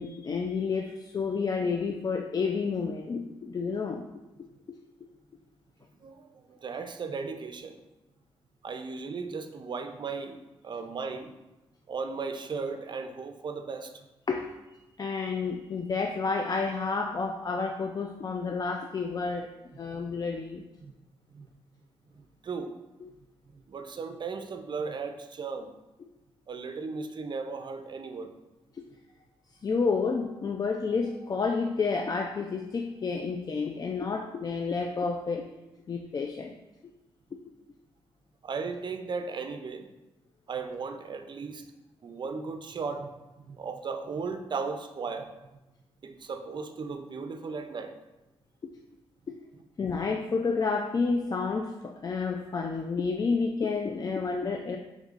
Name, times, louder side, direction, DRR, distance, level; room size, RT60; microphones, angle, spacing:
voice 1, 0.0-4.1 14.3-19.5 19.8-20.6 28.7-28.8 29.6-35.5 35.9-36.5 49.8-54.8, left 4 dB, 40° left, 3 dB, 0.4 m, -30 dB
voice 2, 6.0-7.8 8.6-10.4 10.6-11.3 11.9-14.0 20.8-21.0 21.3-21.5 22.1-22.7 23.5-25.7 26.5-28.3 38.4-39.9 40.5-41.6 42.0-45.3 46.0-47.9, right 4 dB, 50° right, 7 dB, 0.5 m, -36 dB
5.3 x 3.5 x 2.4 m, 1.0 s
cardioid pair, 70°, 10 cm